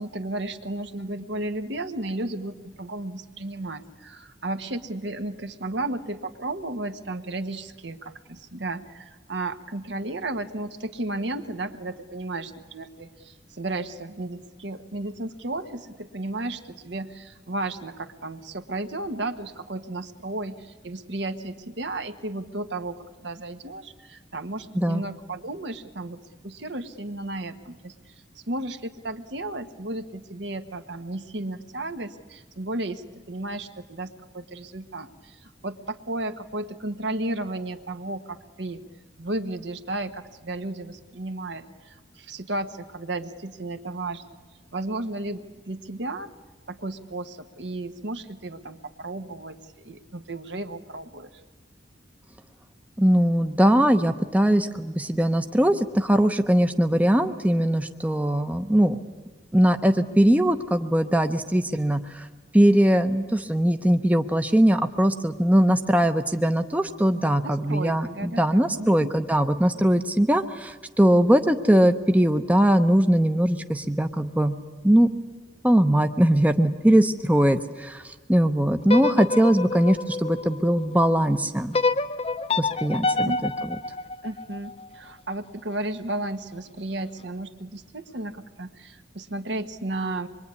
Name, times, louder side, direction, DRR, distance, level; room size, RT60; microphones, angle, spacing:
voice 1, 0.0-26.2 26.4-38.8 39.2-44.2 44.7-46.3 46.7-51.3 67.4-69.1 83.2-83.4 84.2-90.3, right 2 dB, 70° right, 8 dB, 1.3 m, -33 dB
voice 2, 53.0-59.0 59.5-62.3 62.5-74.6 74.8-75.1 75.6-81.8 82.6-83.8, right 1 dB, 10° right, 7 dB, 0.8 m, -21 dB
sound 1, 78.8-81.0 81.7-84.9, left 3 dB, 30° left, 0.7 m, -27 dB
25.5 x 22.5 x 9.7 m, 1.3 s
head